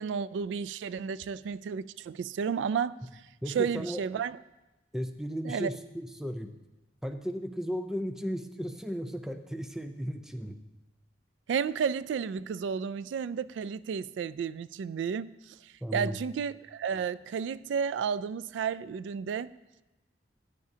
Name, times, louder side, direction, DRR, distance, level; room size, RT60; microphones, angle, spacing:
voice 1, 0.0-3.0 3.5-4.4 5.4-5.7 11.5-19.5, right 6 dB, 90° right, 18 dB, 0.3 m, -32 dB
voice 2, 3.4-4.0 4.9-6.5 7.0-10.6 15.8-16.2, equal, 5° right, 7 dB, 0.5 m, -35 dB
13.5 x 9.8 x 2.8 m, 1.0 s
head